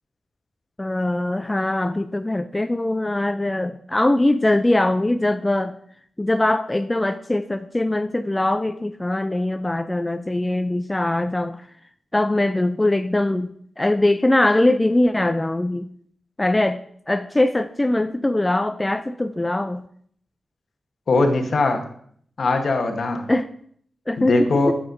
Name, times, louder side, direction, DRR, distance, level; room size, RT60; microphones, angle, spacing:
voice 1, 0.8-5.8 6.2-11.7 12.1-15.9 16.4-19.8 23.3-23.5 24.1-24.4 24.7-24.8, left 1 dB, 20° left, 9 dB, 0.4 m, -22 dB
voice 2, 21.1-21.9 22.4-23.3 24.2-24.7, left 2 dB, 65° left, 5 dB, 1.1 m, -20 dB
8.4 x 6.9 x 2.6 m, 0.63 s
cardioid pair, 45°, 0 cm